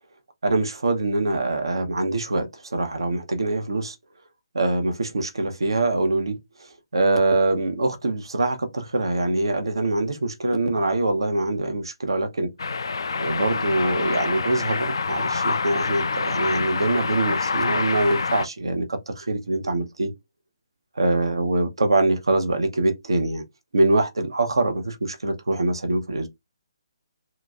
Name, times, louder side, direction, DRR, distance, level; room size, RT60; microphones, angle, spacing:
voice 1, 0.4-3.9 4.5-12.5 13.2-20.1 21.0-23.4 23.7-26.3, right 2 dB, 65° right, 0.7 m, -24 dB
sound 1, 12.6-18.5, left 4 dB, 60° left, 0.3 m, -26 dB
2.8 x 2.6 x 2.2 m
figure-of-eight pair, 140°, 3 cm